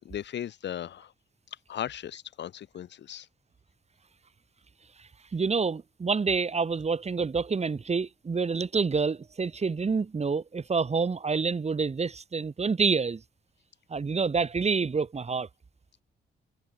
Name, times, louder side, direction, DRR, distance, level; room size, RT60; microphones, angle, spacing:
voice 1, 0.0-1.1 1.7-3.3, left 10 dB, 75° left, 6.3 m, -37 dB
voice 2, 5.0-13.2 13.9-15.5, right 5 dB, 35° right, 4.6 m, -28 dB
cardioid pair, 90°, 18 cm